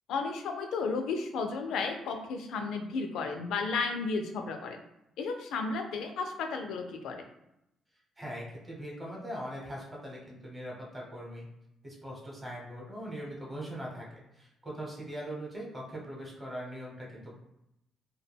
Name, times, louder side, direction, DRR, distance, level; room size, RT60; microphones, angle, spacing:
voice 1, 0.1-4.8 5.2-7.2, left 4 dB, 80° left, 5 dB, 0.3 m, -33 dB
voice 2, 8.2-11.5 11.8-17.3, equal, 15° right, -3 dB, 0.9 m, -41 dB
2.1 x 2.1 x 3.4 m, 0.83 s
cardioid pair, 90°, 0 cm